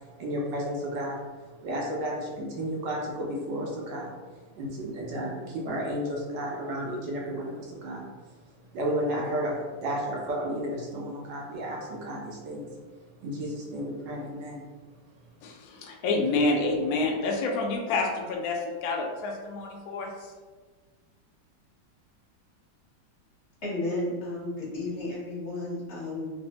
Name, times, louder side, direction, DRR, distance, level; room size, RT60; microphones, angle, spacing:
voice 1, 0.2-1.2 1.6-4.1 4.5-8.0 8.7-9.5 9.8-12.7 13.2-14.7, equal, 75° right, -2 dB, 1.2 m, -32 dB
voice 2, 15.4-20.3, left 3 dB, 85° left, 1 dB, 0.7 m, -28 dB
voice 3, 23.6-26.3, left 2 dB, 40° left, -7 dB, 1.1 m, -33 dB
3.3 x 2.0 x 2.8 m, 1.4 s
omnidirectional pair, 2.1 m